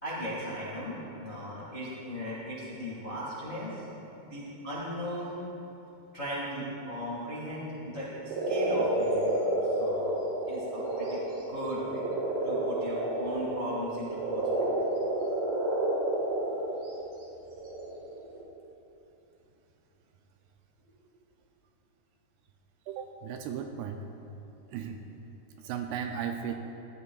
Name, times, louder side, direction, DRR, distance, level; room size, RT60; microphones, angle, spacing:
voice 1, 0.0-4.0 4.3-5.3 6.1-10.1 10.5-11.2 11.5-12.0 12.4-14.7, equal, 75° left, -7 dB, 0.5 m, -37 dB
sound 1, 8.2-16.7 17.4-18.4, right 2 dB, 65° right, 2.9 m, -30 dB
voice 2, 22.9-24.0 24.7-25.0 25.6-26.5, right 8 dB, 85° right, 4 dB, 2.4 m, -36 dB
15.5 x 12.0 x 2.3 m, 3.0 s
omnidirectional pair, 4.9 m